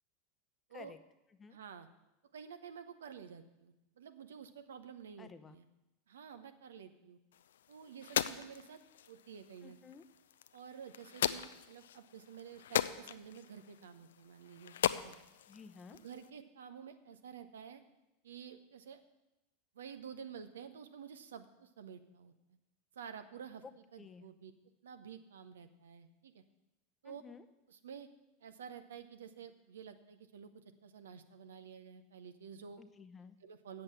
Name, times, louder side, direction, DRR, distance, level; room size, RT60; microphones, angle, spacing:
voice 1, 1.5-1.9 2.3-5.7 6.1-7.2 7.7-8.8 9.1-9.8 10.5-15.2 15.9-17.8 18.2-19.0 19.7-22.3 22.9-23.6 23.9-24.5 24.8-26.4 27.0-27.2 27.7-28.1 28.4-32.8 33.4-33.8, right 7 dB, 70° right, 9 dB, 0.8 m, -51 dB
voice 2, 5.2-5.6 9.6-10.0 15.5-16.0 23.6-23.7 24.0-24.2 27.0-27.5 32.8-33.4, left 5 dB, 20° left, 10 dB, 0.7 m, -53 dB
sound 1, 7.3-16.3, left 10 dB, 70° left, 0.4 m, -39 dB
7.7 x 7.7 x 8.4 m, 0.96 s
figure-of-eight pair, 85°, 0 cm